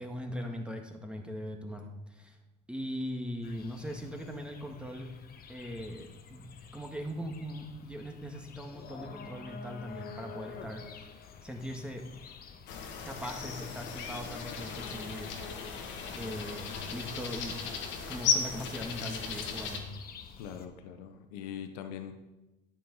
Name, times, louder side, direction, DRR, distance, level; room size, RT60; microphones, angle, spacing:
voice 1, 0.0-2.4 2.7-5.1 5.5-10.9 11.4-12.1 13.0-15.3 16.2-17.6 18.1-19.9, equal, 5° right, 2 dB, 1.9 m, -40 dB
sound 1, 3.4-20.7, left 5 dB, 50° left, 1.3 m, -50 dB
sound 2, 12.7-19.8, left 6 dB, 70° left, 1.8 m, -36 dB
voice 2, 20.4-22.1, left 9 dB, 85° left, 8 dB, 0.9 m, -42 dB
11.5 x 7.6 x 5.5 m, 1.0 s
supercardioid pair, 80°, 20 cm